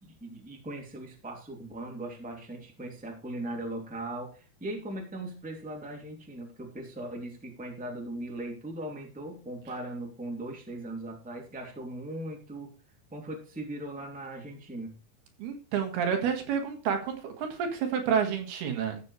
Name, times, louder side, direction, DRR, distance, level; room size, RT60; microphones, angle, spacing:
voice 1, 0.0-12.7 13.1-15.0, right 1 dB, 5° right, 2 dB, 1.9 m, -39 dB
voice 2, 15.4-19.0, right 7 dB, 75° right, 5 dB, 3.7 m, -29 dB
13.5 x 8.3 x 3.3 m, 0.36 s
omnidirectional pair, 4.6 m